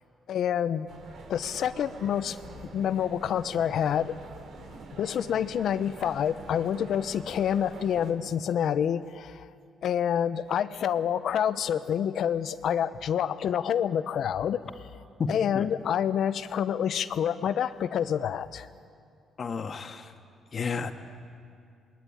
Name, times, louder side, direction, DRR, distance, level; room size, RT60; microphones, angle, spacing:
voice 1, 0.3-0.9 1.3-2.4 2.7-4.2 5.0-9.5 9.8-14.7 15.3-18.7, left 9 dB, 70° left, 13 dB, 1.0 m, -27 dB
sound 1, 0.9-8.1, right 4 dB, 70° right, 3.6 m, -46 dB
voice 2, 15.2-15.7 19.4-20.1 20.5-20.9, left 5 dB, 45° left, 6 dB, 1.9 m, -32 dB
27.0 x 21.0 x 9.9 m, 2.4 s
cardioid pair, 90°, 0 cm